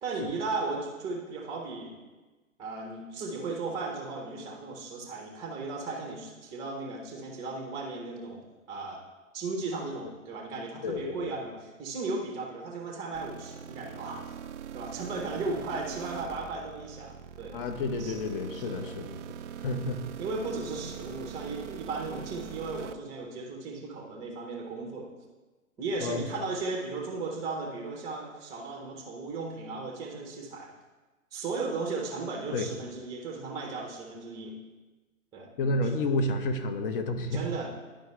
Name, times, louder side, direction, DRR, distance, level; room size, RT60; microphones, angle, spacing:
voice 1, 0.0-1.9 2.6-8.4 8.7-9.0 9.3-14.2 14.7-17.5 18.0-18.1 18.5-18.9 20.2-25.1 25.8-30.7 31.3-34.5 35.3-35.5 37.3-37.7, right 3 dB, 10° right, -1 dB, 0.7 m, -36 dB
voice 2, 10.8-11.3 17.5-19.2 19.6-20.0 26.0-26.3 32.5-32.7 35.6-37.4, left 2 dB, 40° left, 7 dB, 0.9 m, -30 dB
sound 1, 13.1-22.9, right 8 dB, 60° right, 0.5 m, -42 dB
11.0 x 5.0 x 3.2 m, 1.2 s
hypercardioid pair, 130°, 40 cm